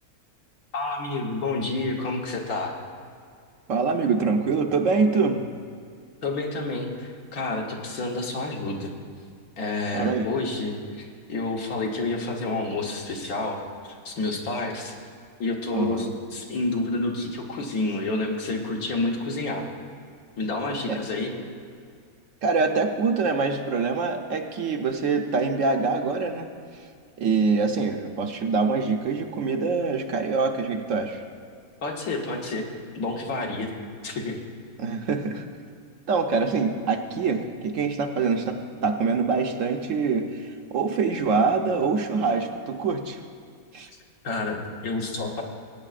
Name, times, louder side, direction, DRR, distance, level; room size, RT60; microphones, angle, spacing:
voice 1, 0.7-2.7 6.2-8.9 9.6-14.9 15.4-19.6 20.4-21.3 31.8-32.6 32.9-33.7 34.0-34.4 44.2-45.4, left 2 dB, 75° left, 0 dB, 1.6 m, -29 dB
voice 2, 3.7-5.4 9.9-10.3 15.7-16.1 20.9-21.0 22.4-26.5 26.7-26.9 27.2-31.2 34.8-35.4 36.1-43.2 43.7-43.9, right 4 dB, 65° right, 5 dB, 1.0 m, -25 dB
20.0 x 8.9 x 2.5 m, 2.2 s
omnidirectional pair, 1.6 m